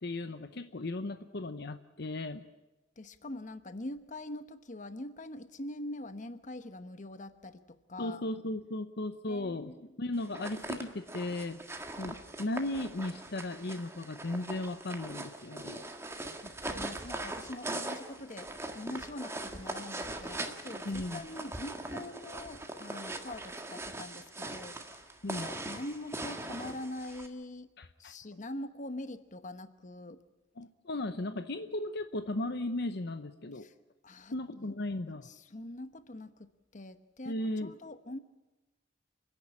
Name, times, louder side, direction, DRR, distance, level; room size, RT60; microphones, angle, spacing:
voice 1, 0.0-2.4 8.0-9.7 10.0-15.8 20.8-21.2 25.2-25.5 27.8-28.1 30.6-33.7 34.3-35.3 37.3-37.7, left 2 dB, 60° left, 10 dB, 0.9 m, -36 dB
voice 2, 3.0-8.2 9.3-9.9 16.4-27.7 28.0-30.2 33.6-33.7 34.0-34.7 35.2-38.2, left 1 dB, 40° left, 11 dB, 1.1 m, -44 dB
sound 1, 10.2-27.3, right 2 dB, 15° right, 1.6 m, -41 dB
30.0 x 11.0 x 10.0 m, 1.1 s
head